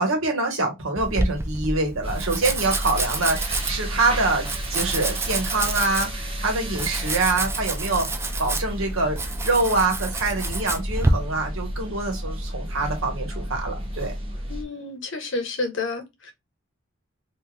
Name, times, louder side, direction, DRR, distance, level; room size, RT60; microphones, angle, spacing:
voice 1, 0.0-8.1 8.4-14.2, right 3 dB, 85° right, 1.2 m, -25 dB
Domestic sounds home sounds, 1.0-11.1, right 2 dB, 15° right, 0.3 m, -29 dB
sound 1, 2.0-14.6, equal, 30° right, 1.1 m, -32 dB
voice 2, 14.5-16.3, left 3 dB, 65° left, 0.9 m, -30 dB
3.5 x 2.7 x 2.3 m
head